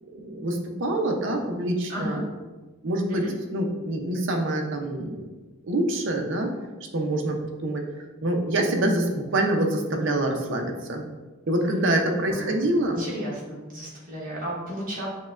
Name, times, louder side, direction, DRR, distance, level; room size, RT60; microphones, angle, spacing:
voice 1, 0.0-2.2 2.8-3.2 3.5-5.3 5.6-6.5 6.9-7.8 8.2-11.1 11.5-13.0, right 1 dB, 60° right, 2 dB, 0.6 m, -26 dB
voice 2, 1.9-2.2 3.1-3.3 12.3-15.1, equal, 40° right, -6 dB, 1.2 m, -34 dB
6.3 x 2.2 x 2.4 m, 1.2 s
head